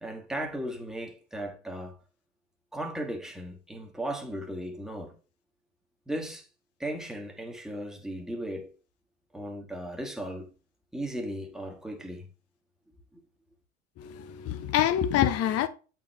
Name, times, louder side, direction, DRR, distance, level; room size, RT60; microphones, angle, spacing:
voice 1, 0.0-2.0 2.7-5.1 6.1-6.5 6.8-8.7 9.3-10.5 10.9-12.3, right 1 dB, ahead, 1.5 m, -36 dB
voice 2, 14.0-15.7, left 11 dB, 50° left, 0.9 m, -26 dB
8.3 x 4.6 x 3.2 m
hypercardioid pair, 80°, 33 cm